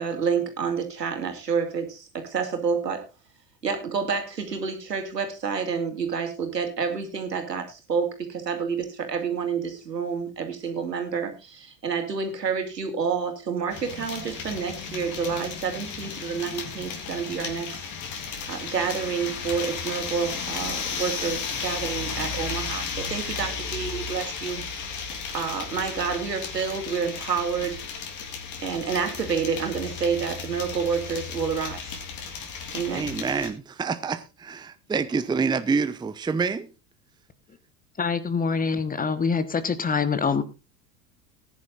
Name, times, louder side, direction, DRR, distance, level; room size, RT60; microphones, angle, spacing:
voice 1, 0.0-3.0 3.6-17.8 18.5-24.6 25.3-27.8 28.6-31.9 32.7-33.1, right 6 dB, 80° right, 3.1 m, -29 dB
sound 1, 13.7-33.5, left 5 dB, 40° left, 3.5 m, -34 dB
voice 2, 32.9-36.7, right 5 dB, 10° right, 0.8 m, -27 dB
voice 3, 38.0-40.4, left 5 dB, 15° left, 1.4 m, -25 dB
19.5 x 10.5 x 2.5 m
figure-of-eight pair, 80°, 48 cm